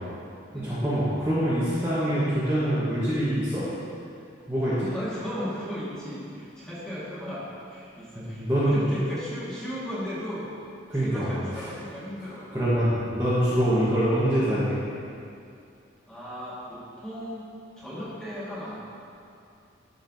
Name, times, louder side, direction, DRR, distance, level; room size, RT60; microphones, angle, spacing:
voice 1, 0.6-3.6 4.5-4.9 8.1-8.8 10.9-11.3 12.5-14.8, equal, 10° right, -13 dB, 1.2 m, -24 dB
voice 2, 4.9-10.5 10.9-12.5 16.1-17.5 17.8-18.8, equal, 5° left, -10 dB, 1.7 m, -36 dB
12.0 x 5.4 x 2.7 m, 2.5 s
head